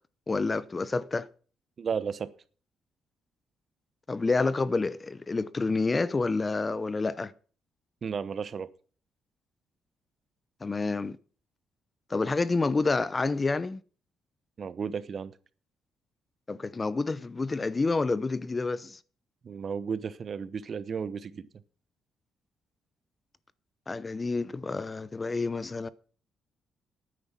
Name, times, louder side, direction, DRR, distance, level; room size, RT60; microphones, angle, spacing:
voice 1, 0.3-1.3 4.1-7.3 10.6-11.2 12.1-13.8 16.5-19.0 23.9-25.9, left 3 dB, 25° left, 0.8 m, -28 dB
voice 2, 1.8-2.3 8.0-8.7 14.6-15.3 19.4-21.5, right 6 dB, 45° right, 0.9 m, -33 dB
9.8 x 9.5 x 7.4 m
cardioid pair, 90°, 0 cm